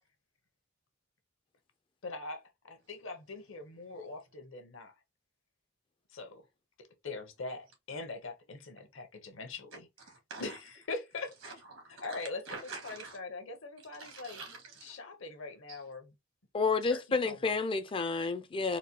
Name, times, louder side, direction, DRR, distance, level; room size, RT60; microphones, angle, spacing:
voice 1, 2.0-2.4 2.6-4.9 6.1-6.4 7.0-9.9 10.4-11.3 12.0-12.4 12.8-14.4 14.8-16.1 16.9-17.5 18.7-18.8, left 3 dB, 70° left, 0.9 m, -42 dB
voice 2, 10.1-10.6 11.4-12.2 12.5-13.2 14.0-14.9 15.7-15.8, right 3 dB, 85° right, 1.8 m, -46 dB
voice 3, 16.5-18.8, left 4 dB, 25° left, 0.4 m, -30 dB
4.1 x 2.2 x 2.8 m
head